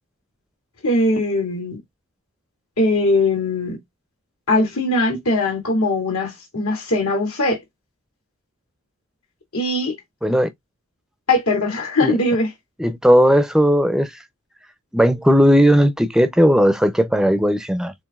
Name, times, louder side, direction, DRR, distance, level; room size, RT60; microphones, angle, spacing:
voice 1, 0.8-1.8 2.8-3.8 4.5-7.6 9.5-10.0 11.3-12.5, left 2 dB, 90° left, 2.4 m, -20 dB
voice 2, 12.8-14.2 14.9-17.9, equal, 5° right, 0.4 m, -16 dB
7.0 x 2.5 x 2.3 m
head